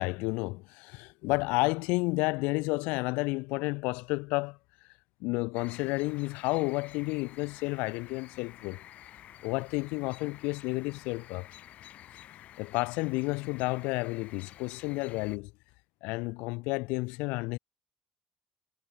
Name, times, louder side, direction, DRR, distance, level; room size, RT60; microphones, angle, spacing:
voice 1, 0.0-4.6 5.2-8.8 9.4-11.5 12.6-15.5 16.0-17.6, left 26 dB, 85° left, 1.3 m, -31 dB
sound 1, 5.5-15.4, left 12 dB, 70° left, 7.1 m, -51 dB
supercardioid pair, 65°, 2 cm